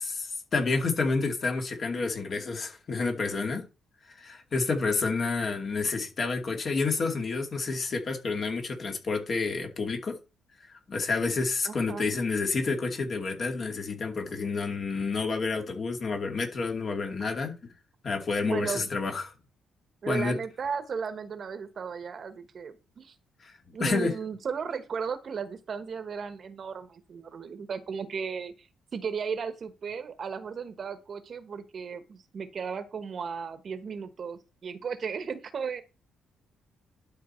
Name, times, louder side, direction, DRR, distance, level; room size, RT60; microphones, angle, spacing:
voice 1, 0.0-3.6 4.2-10.1 10.7-17.5 18.0-19.3 20.1-20.3 23.4-23.5 23.8-24.1, left 4 dB, 45° left, 2.4 m, -29 dB
voice 2, 11.6-12.1 17.2-17.3 18.4-18.9 20.0-23.1 23.7-28.7 28.9-35.8, right 6 dB, 50° right, 1.2 m, -35 dB
11.5 x 4.6 x 4.4 m
cardioid pair, 90°, 0 cm